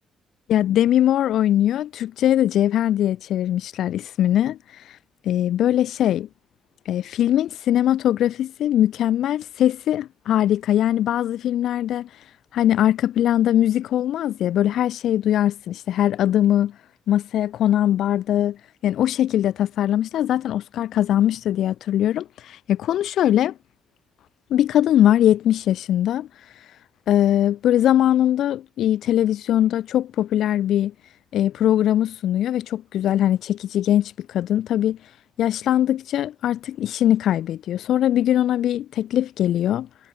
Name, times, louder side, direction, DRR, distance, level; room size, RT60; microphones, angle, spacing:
voice 1, 0.5-4.6 4.9-5.0 5.2-6.3 6.9-12.1 12.5-16.7 17.1-18.6 18.8-23.5 24.5-26.3 27.1-30.9 31.3-35.0 35.4-39.9, left 11 dB, 75° left, 2.1 m, -21 dB
cardioid pair, 90°, 0 cm